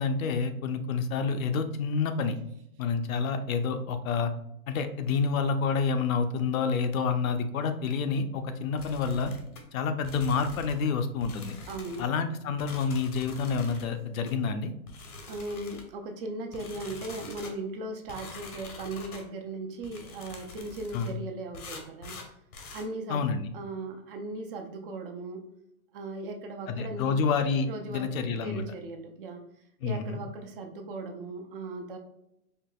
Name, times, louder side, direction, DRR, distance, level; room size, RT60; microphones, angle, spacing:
voice 1, 0.0-2.4 2.8-4.3 4.7-9.3 9.7-11.6 12.0-14.7 20.9-21.1 23.1-23.5 26.7-28.6 29.8-30.2, left 5 dB, 70° left, 8 dB, 0.6 m, -28 dB
sound 1, 8.8-9.6 10.0-10.8 11.2-12.1 12.6-13.9 14.3-14.4 14.9-15.9 16.5-17.6 18.1-19.3 19.8-21.1 21.5-22.9, left 3 dB, 85° left, 1.1 m, -45 dB
voice 2, 11.7-12.0 15.3-22.2 22.7-23.3 23.5-25.4 25.9-27.2 27.6-29.4 29.8-32.0, right 2 dB, 40° right, 4 dB, 0.5 m, -38 dB
4.6 x 2.7 x 2.2 m, 0.79 s
hypercardioid pair, 140°, 43 cm